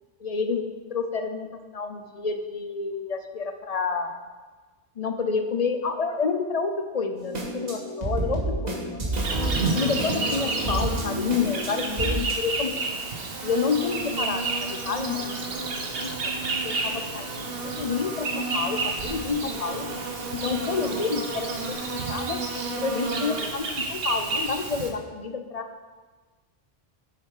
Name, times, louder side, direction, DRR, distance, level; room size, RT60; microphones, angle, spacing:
voice 1, 0.2-4.1 5.0-9.1 9.7-12.8 13.4-15.4 16.0-16.1 16.6-17.3 17.6-19.9 20.3-21.7 22.1-22.4 22.8-25.7, left 5 dB, 40° left, 7 dB, 0.7 m, -29 dB
sound 1, 7.2-12.3, right 1 dB, 40° right, 1.7 m, -30 dB
Insect, 9.1-24.9, right 3 dB, 70° right, 1.2 m, -30 dB
sound 2, 13.1-13.6 14.2-22.1, left 3 dB, 75° left, 1.3 m, -46 dB
7.9 x 7.4 x 4.9 m, 1.3 s
omnidirectional pair, 1.0 m